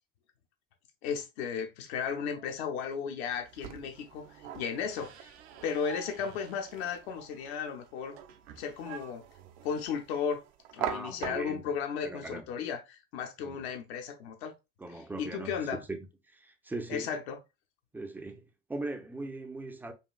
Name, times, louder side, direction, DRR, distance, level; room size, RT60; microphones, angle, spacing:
voice 1, 1.0-4.3 4.5-5.3 5.6-8.1 8.6-9.2 9.6-10.4 10.7-14.5 15.2-15.8 16.9-17.4, left 7 dB, 60° left, 0.8 m, -35 dB
sound 1, 3.3-11.8, right 10 dB, 55° right, 0.6 m, -44 dB
voice 2, 10.8-11.7 12.0-12.4 13.4-13.7 14.8-16.1 16.3-17.1 17.9-19.9, right 2 dB, 5° right, 0.5 m, -40 dB
5.1 x 2.4 x 2.3 m
figure-of-eight pair, 65°, 37 cm